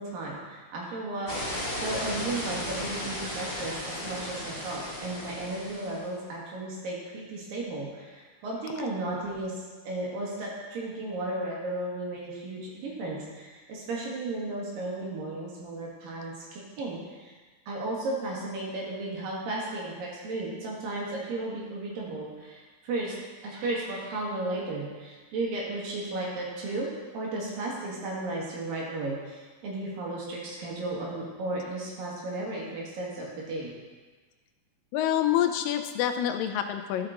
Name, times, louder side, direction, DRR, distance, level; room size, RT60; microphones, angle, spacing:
voice 1, 0.0-9.5 9.8-17.3 17.7-23.2 23.4-26.9 27.1-33.7, right 2 dB, 80° right, -4 dB, 3.6 m, -34 dB
sound 1, 1.3-6.1, left 1 dB, 30° left, 0.9 m, -35 dB
voice 2, 34.9-37.1, left 11 dB, 85° left, 7 dB, 2.3 m, -27 dB
12.5 x 5.8 x 3.9 m, 1.4 s
omnidirectional pair, 3.9 m